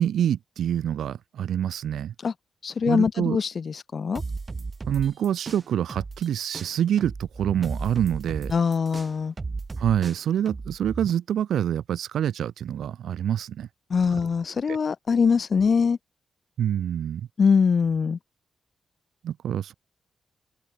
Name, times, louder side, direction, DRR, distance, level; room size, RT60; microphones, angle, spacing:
voice 1, 0.0-2.1 2.9-3.4 4.9-8.5 9.8-13.7 14.7-14.8 16.6-17.3 19.2-19.7, right 10 dB, 85° right, 0.8 m, -26 dB
voice 2, 2.6-4.2 8.5-9.3 13.9-16.0 17.4-18.2, left 5 dB, 45° left, 0.8 m, -23 dB
sound 1, 4.1-6.3 6.5-11.1, right 4 dB, 30° right, 1.5 m, -35 dB
cardioid pair, 105°, 0 cm